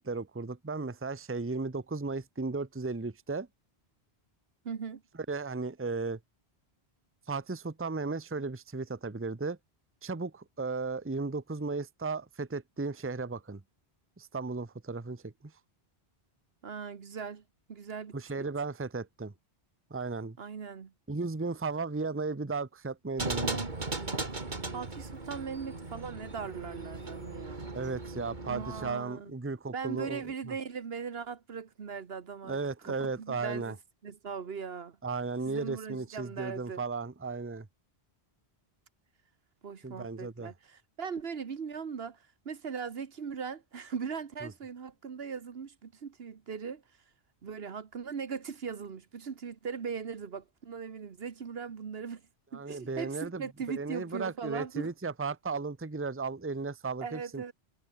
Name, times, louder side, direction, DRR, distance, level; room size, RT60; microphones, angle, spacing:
voice 1, 0.0-3.5 5.3-6.2 7.3-9.6 10.0-13.6 14.2-15.5 18.1-19.3 19.9-20.4 21.1-23.6 27.7-30.5 32.5-33.8 35.0-37.7 39.8-40.5 44.4-44.5 52.5-57.5, right 4 dB, 15° right, 0.8 m, -35 dB
voice 2, 4.6-5.0 16.6-17.4 17.7-18.1 20.4-20.9 24.7-27.7 28.4-29.3 29.7-32.6 32.8-33.8 34.0-35.0 35.5-36.8 39.6-46.8 47.4-52.2 52.5-54.9 57.0-57.5, right 6 dB, 70° right, 1.4 m, -39 dB
sound 1, 23.2-28.9, right 3 dB, 45° right, 2.5 m, -37 dB
omnidirectional pair, 1.1 m